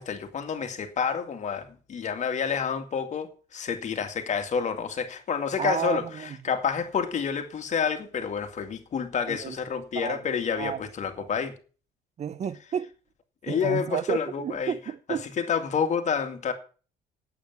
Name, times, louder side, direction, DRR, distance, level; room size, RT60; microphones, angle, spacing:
voice 1, 0.0-11.5 13.4-14.8 15.1-16.5, left 6 dB, 45° left, 2.4 m, -29 dB
voice 2, 5.6-6.6 9.3-9.6 10.0-10.2 10.6-10.8 11.2-11.3 12.2-12.9 13.5-15.3, right 8 dB, 40° right, 0.7 m, -31 dB
8.7 x 8.7 x 9.3 m
cardioid pair, 110°, 17 cm